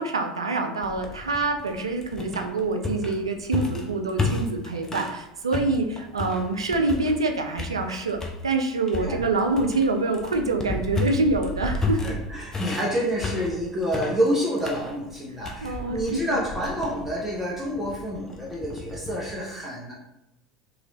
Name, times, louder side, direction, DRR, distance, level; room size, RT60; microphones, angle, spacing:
voice 1, 0.0-8.2 8.4-12.0 15.6-16.0, right 3 dB, 85° right, 4 dB, 0.4 m, -26 dB
sound 1, 0.8-5.2 5.5-7.3 7.6-8.4 8.9-19.4, left 3 dB, 20° left, 0.6 m, -33 dB
voice 2, 9.0-9.3 12.0-19.9, equal, 10° right, -6 dB, 0.8 m, -28 dB
3.0 x 2.5 x 3.0 m, 0.87 s
figure-of-eight pair, 75°, 3 cm